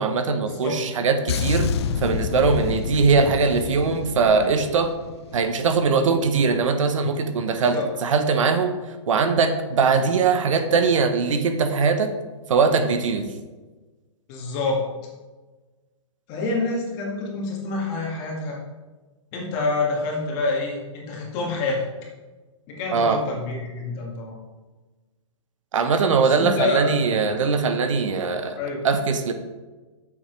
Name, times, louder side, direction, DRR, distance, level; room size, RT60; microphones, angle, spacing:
voice 1, 0.0-1.7 2.0-4.9 5.3-8.8 9.1-12.1 12.5-13.3 22.9-23.2 25.7-28.6 28.8-29.3, right 5 dB, 70° right, 8 dB, 1.1 m, -21 dB
sound 1, 1.3-5.8 6.1-6.4, left 7 dB, 55° left, 0.5 m, -28 dB
voice 2, 7.6-7.9 14.3-14.8 16.3-18.6 19.3-21.9 22.7-24.4 26.2-26.9 28.6-28.8, left 3 dB, 25° left, -2 dB, 2.0 m, -27 dB
10.0 x 7.3 x 3.3 m, 1.3 s
hypercardioid pair, 165°, 17 cm